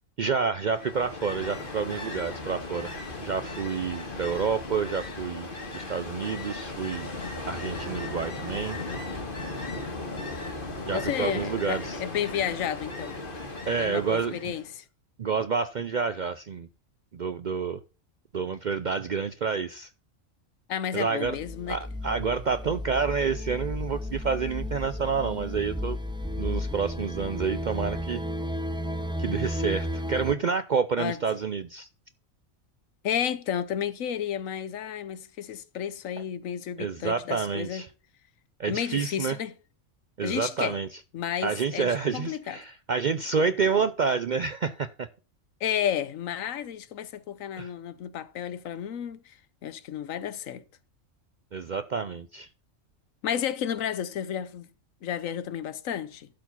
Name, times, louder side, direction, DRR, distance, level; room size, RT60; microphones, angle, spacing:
voice 1, 0.2-5.5 5.7-7.1 7.5-8.8 10.8-12.0 13.7-14.5 15.2-16.7 17.1-17.8 18.3-19.9 20.9-21.4 21.7-26.0 26.4-28.2 29.2-31.9 36.8-37.9 38.6-39.4 40.2-40.9 41.4-45.1 47.6-47.7 51.5-52.5, right 5 dB, 60° right, 0.5 m, -29 dB
Ocean, 0.6-14.7, left 2 dB, 40° left, 1.9 m, -37 dB
voice 2, 10.9-13.2 13.8-14.8 20.7-21.8 31.0-31.2 33.0-37.8 38.7-39.5 40.2-40.8 41.1-42.6 45.6-49.3 49.6-50.6 53.2-54.7 55.0-56.3, left 9 dB, 80° left, 1.2 m, -32 dB
sound 1, 21.2-30.3, equal, 5° right, 0.5 m, -33 dB
12.0 x 4.8 x 5.6 m
omnidirectional pair, 1.4 m